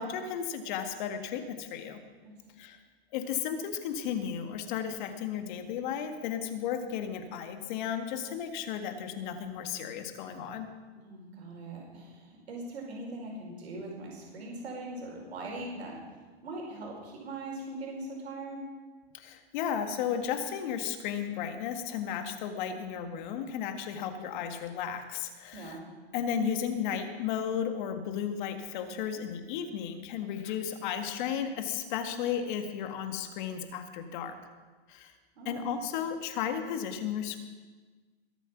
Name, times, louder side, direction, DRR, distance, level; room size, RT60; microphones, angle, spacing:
voice 1, 0.0-2.0 2.6-2.8 3.1-10.7 19.1-25.8 26.1-34.4 34.9-35.1 35.5-37.4, left 8 dB, 50° left, 7 dB, 1.7 m, -34 dB
voice 2, 11.0-15.9 16.4-18.6 25.5-25.8 35.4-35.6, right 2 dB, 90° right, -1 dB, 4.8 m, -41 dB
21.5 x 8.1 x 6.0 m, 1.4 s
hypercardioid pair, 145°, 31 cm